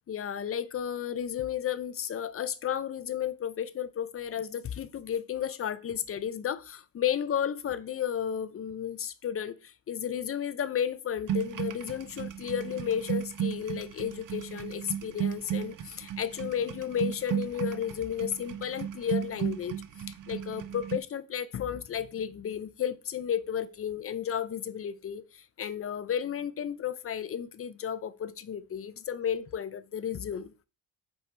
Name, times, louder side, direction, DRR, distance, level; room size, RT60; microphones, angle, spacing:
voice 1, 0.1-19.8 20.3-30.5, left 9 dB, 35° left, 0.5 m, -33 dB
sound 1, 11.3-21.0, right 9 dB, 50° right, 0.7 m, -35 dB
8.0 x 4.5 x 3.3 m
cardioid pair, 145°, 42 cm